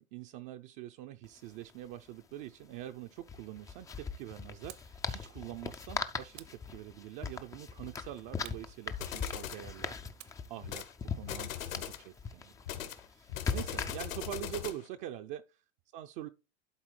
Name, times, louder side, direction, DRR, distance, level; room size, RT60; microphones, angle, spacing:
voice 1, 0.0-10.0 10.5-10.9 11.1-12.8 13.1-15.6 15.9-16.3, right 12 dB, 40° right, 0.5 m, -45 dB
sound 1, 1.2-1.3 1.5-1.7 3.2-14.4, left 5 dB, 10° left, 0.3 m, -40 dB
sound 2, 4.7-5.0 6.3-7.3 8.4-9.6 10.2-12.4, right 15 dB, 65° right, 1.0 m, -56 dB
sound 3, 9.0-9.7 10.6-10.9 11.2-12.1 12.7-14.9, left 10 dB, 80° left, 1.6 m, -40 dB
11.5 x 4.2 x 3.2 m
hypercardioid pair, 110°, 40 cm